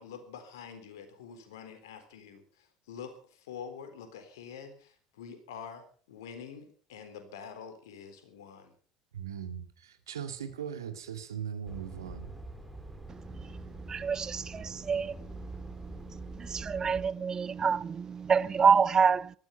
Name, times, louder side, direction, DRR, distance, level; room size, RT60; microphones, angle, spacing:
voice 1, 0.0-8.7, left 7 dB, 70° left, 3.9 m, -46 dB
voice 2, 9.1-12.3, right 8 dB, 80° right, 2.2 m, -39 dB
sound 1, 11.6-17.1, right 2 dB, 5° right, 4.6 m, -44 dB
voice 3, 13.9-15.1 16.1-19.3, right 6 dB, 30° right, 0.8 m, -27 dB
18.0 x 14.0 x 5.6 m
figure-of-eight pair, 70°, 2 cm